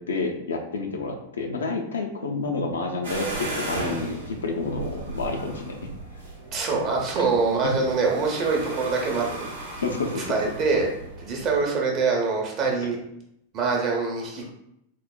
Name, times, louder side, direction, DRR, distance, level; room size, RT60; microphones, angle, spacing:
voice 1, 0.0-5.8 7.2-7.3 7.6-7.8 9.8-10.4, left 3 dB, 70° left, 2 dB, 0.4 m, -29 dB
sound 1, 3.0-11.5, right 2 dB, 75° right, 0.7 m, -36 dB
voice 2, 6.5-9.8 10.3-10.9 11.2-13.0 13.5-14.5, right 4 dB, 35° right, 0 dB, 0.7 m, -24 dB
3.8 x 2.0 x 2.3 m, 0.78 s
figure-of-eight pair, 90°, 0 cm